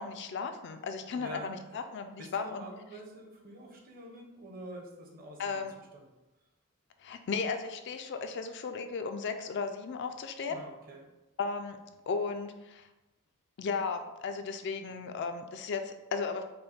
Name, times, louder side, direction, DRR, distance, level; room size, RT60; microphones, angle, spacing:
voice 1, 0.0-2.7 2.9-3.0 5.4-5.7 7.0-10.6 11.4-11.8 12.1-12.9 13.6-16.4, left 5 dB, 50° left, 7 dB, 0.4 m, -35 dB
voice 2, 1.2-1.8 2.2-6.1 10.5-11.1, right 1 dB, 40° right, 0 dB, 0.8 m, -47 dB
5.3 x 2.1 x 4.2 m, 1.0 s
head